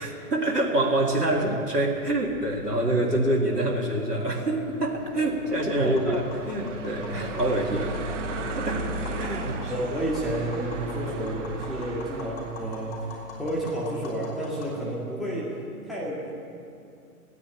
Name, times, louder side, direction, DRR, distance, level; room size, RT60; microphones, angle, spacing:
voice 1, 0.0-8.0 8.3-8.9 9.2-9.7, right 1 dB, 85° right, 0 dB, 2.1 m, -26 dB
sound 1, 1.9-14.1, right 3 dB, 50° right, 1.3 m, -37 dB
sound 2, 2.8-11.6, left 5 dB, 60° left, 1.9 m, -42 dB
Tap, 5.5-14.7, left 3 dB, 45° left, 5.1 m, -44 dB
voice 2, 5.8-6.2 7.0-7.2 7.6-7.7 8.7-8.8 9.7-15.6 15.9-16.3, right 1 dB, ahead, -6 dB, 2.0 m, -31 dB
17.0 x 9.8 x 8.5 m, 2.5 s
figure-of-eight pair, 125°, 46 cm